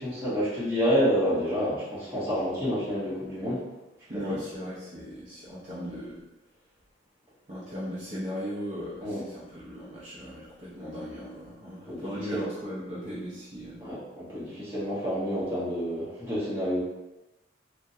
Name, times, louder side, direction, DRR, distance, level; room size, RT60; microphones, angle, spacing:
voice 1, 0.0-3.6 4.1-4.4 9.0-9.2 11.9-12.4 13.8-16.8, equal, 10° right, -11 dB, 1.2 m, -29 dB
voice 2, 4.1-6.2 7.5-13.8, equal, 40° right, -10 dB, 0.7 m, -37 dB
3.4 x 2.2 x 2.7 m, 1.0 s
head